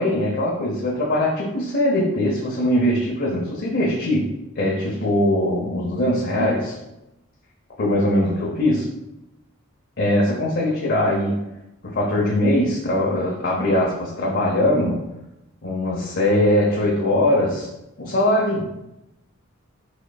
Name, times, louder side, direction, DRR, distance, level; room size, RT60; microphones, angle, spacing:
voice 1, 0.0-4.3 4.6-6.8 7.8-8.9 10.0-11.4 11.8-15.0 15.6-17.7 18.0-18.6, left 1 dB, 55° left, -4 dB, 0.7 m, -21 dB
5.1 x 4.4 x 2.3 m, 0.92 s
head